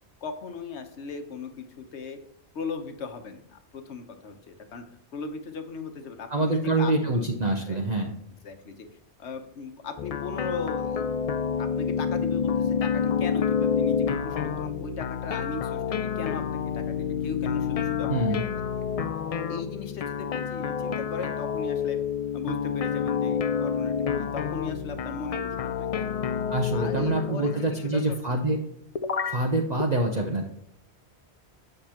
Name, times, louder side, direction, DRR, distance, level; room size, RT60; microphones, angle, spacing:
voice 1, 0.2-2.2 2.5-4.9 5.1-7.3 7.7-8.1 8.4-8.9 9.2-11.1 11.6-18.2 19.5-22.0 22.3-26.2 26.7-28.2, left 4 dB, 85° left, 7 dB, 1.2 m, -38 dB
voice 2, 6.3-8.1 18.1-18.4 26.5-28.6 29.2-30.5, right 2 dB, 45° right, 1 dB, 0.8 m, -26 dB
sound 1, 10.0-27.8 29.0-29.5 29.8-29.9, left 7 dB, 65° left, 0.3 m, -28 dB
7.7 x 6.7 x 2.9 m, 0.76 s
omnidirectional pair, 1.1 m